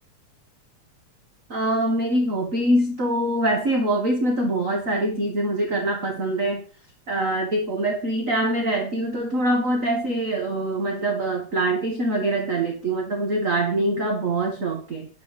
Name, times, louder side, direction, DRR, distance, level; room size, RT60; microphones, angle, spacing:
voice 1, 1.5-6.6 7.1-15.1, right 1 dB, 30° right, 2 dB, 1.8 m, -24 dB
11.5 x 5.6 x 7.7 m, 0.39 s
omnidirectional pair, 3.5 m